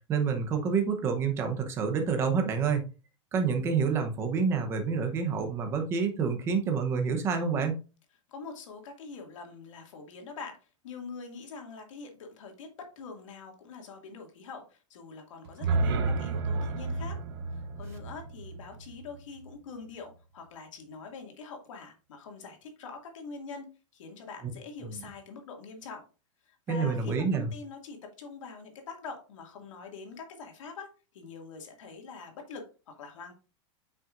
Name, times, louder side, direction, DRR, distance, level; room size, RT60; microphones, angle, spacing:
voice 1, 0.1-2.8 3.3-7.8 24.8-25.0 26.7-27.5, right 5 dB, 15° right, 5 dB, 0.9 m, -28 dB
voice 2, 8.3-12.7 13.0-17.2 17.5-23.7 23.9-26.0 26.4-30.9 31.1-33.3, left 4 dB, 75° left, 3 dB, 2.3 m, -44 dB
sound 1, 15.4-19.5, right 3 dB, 45° right, 0.8 m, -31 dB
8.3 x 5.9 x 2.6 m, 0.33 s
supercardioid pair, 180°, 16 cm